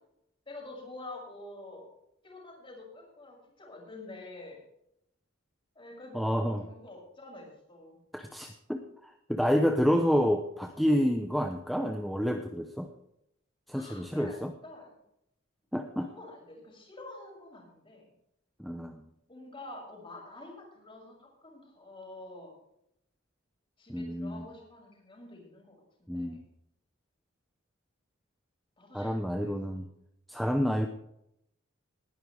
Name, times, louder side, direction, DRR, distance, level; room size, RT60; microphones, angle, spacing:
voice 1, 0.5-1.8 2.2-4.6 5.7-8.0 13.7-14.4 14.6-14.9 16.0-18.1 19.3-22.5 23.8-26.3 28.8-29.8, left 2 dB, 25° left, -1 dB, 6.2 m, -47 dB
voice 2, 6.1-6.6 8.1-12.9 13.7-14.5 15.7-16.1 18.6-19.0 23.9-24.5 26.1-26.4 28.9-29.9 30.3-30.9, equal, ahead, 4 dB, 0.8 m, -29 dB
19.5 x 11.5 x 3.5 m, 0.77 s
head